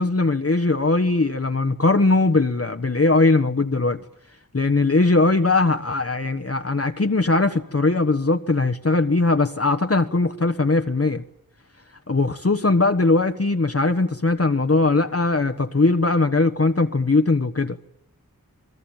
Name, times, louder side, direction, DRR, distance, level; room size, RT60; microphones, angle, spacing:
voice 1, 0.0-4.0 4.5-11.2 12.1-17.8, left 3 dB, 40° left, 1.3 m, -20 dB
27.5 x 20.5 x 9.0 m
wide cardioid pair, 40°, 35 cm